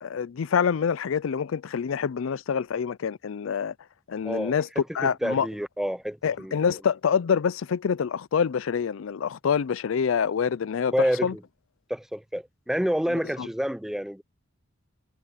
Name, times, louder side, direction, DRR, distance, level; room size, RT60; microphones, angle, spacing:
voice 1, 0.0-3.7 4.1-5.5 6.2-11.3 13.1-13.5, left 6 dB, 75° left, 0.4 m, -26 dB
voice 2, 5.2-6.5 10.9-11.3 11.9-14.2, equal, ahead, 0.4 m, -28 dB
head